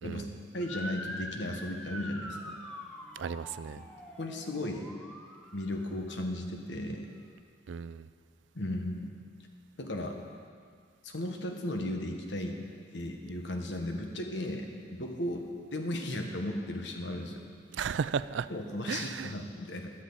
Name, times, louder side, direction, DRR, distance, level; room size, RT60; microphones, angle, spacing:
voice 1, 0.0-2.5 4.2-4.9 5.5-7.1 8.5-9.1 9.8-10.2 11.0-12.6 12.9-17.4 18.5-19.9, left 1 dB, 80° left, 3 dB, 1.3 m, -36 dB
Motor vehicle (road) / Siren, 0.6-5.8, equal, 5° left, 0.9 m, -44 dB
voice 2, 3.2-3.8 7.7-8.1 17.7-18.5 18.9-19.3, right 6 dB, 85° right, 15 dB, 0.4 m, -34 dB
15.5 x 12.0 x 4.1 m, 2.2 s
head